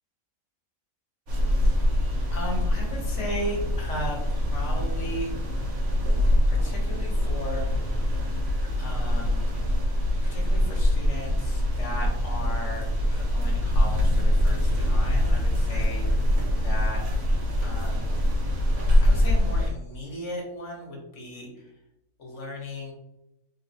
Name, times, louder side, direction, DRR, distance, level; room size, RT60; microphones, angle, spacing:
sound 1, 1.3-19.7, left 1 dB, 90° right, 1.4 m, -24 dB
voice 1, 2.3-5.3 6.5-8.0 8.8-9.6 10.2-17.0 17.6-18.1 19.0-21.7 22.2-22.9, equal, 60° left, -1 dB, 1.3 m, -36 dB
3.6 x 3.1 x 2.8 m, 0.88 s
omnidirectional pair, 1.4 m